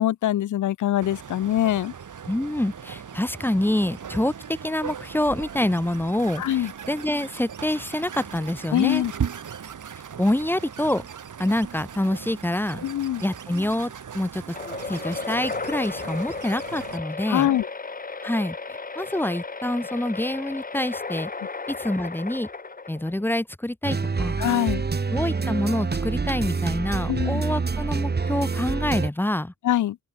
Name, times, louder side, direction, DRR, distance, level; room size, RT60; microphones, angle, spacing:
voice 1, 0.0-1.9 6.4-6.7 8.7-9.1 12.8-13.2 17.3-17.7 24.4-24.8 27.1-27.4 29.6-30.0, left 12 dB, 80° left, 0.5 m, -23 dB
sound 1, 1.0-17.0, right 7 dB, 85° right, 3.1 m, -38 dB
voice 2, 2.3-9.0 10.2-11.1 11.4-12.8 13.2-14.6 14.9-17.5 18.2-18.6 19.0-21.3 21.7-22.5 22.9-24.4 25.1-29.5, left 1 dB, 5° left, 0.9 m, -26 dB
sound 2, 14.5-23.3, left 4 dB, 30° left, 1.1 m, -34 dB
sound 3, 23.8-29.1, right 4 dB, 35° right, 1.3 m, -26 dB
open air
wide cardioid pair, 100°, 30 cm